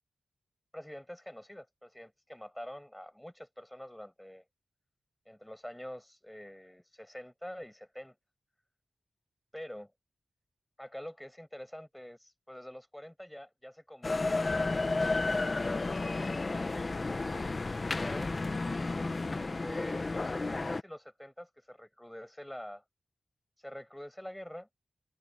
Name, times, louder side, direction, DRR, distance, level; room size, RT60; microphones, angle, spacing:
voice 1, 0.7-4.4 5.3-8.1 9.5-9.9 10.8-17.2 18.0-18.4 18.8-19.1 19.4-22.8 23.6-24.7, equal, 5° left, 6.2 m, -46 dB
sound 1, 14.0-20.8, left 3 dB, 30° left, 0.8 m, -32 dB
wide cardioid pair, 175°, 0 cm